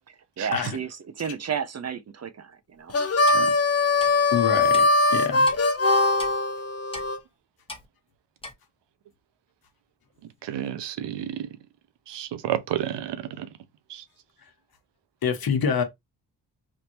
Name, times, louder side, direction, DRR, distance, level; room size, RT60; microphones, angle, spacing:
voice 1, 0.1-2.9, right 7 dB, 40° right, 0.6 m, -33 dB
Harmonica, 2.9-7.2, left 3 dB, 35° left, 0.8 m, -21 dB
Clock, 3.3-3.4 4.0-4.1 4.7-4.8 5.4-5.6 6.2-6.3 6.9-7.1 7.7-7.8 8.4-8.5, left 2 dB, 15° left, 1.2 m, -38 dB
voice 2, 4.3-5.5 15.2-15.8, left 6 dB, 60° left, 1.1 m, -26 dB
voice 3, 10.4-11.5 12.1-13.5 13.9-14.0, right 11 dB, 75° right, 0.6 m, -31 dB
3.5 x 2.7 x 2.9 m
cardioid pair, 65°, 42 cm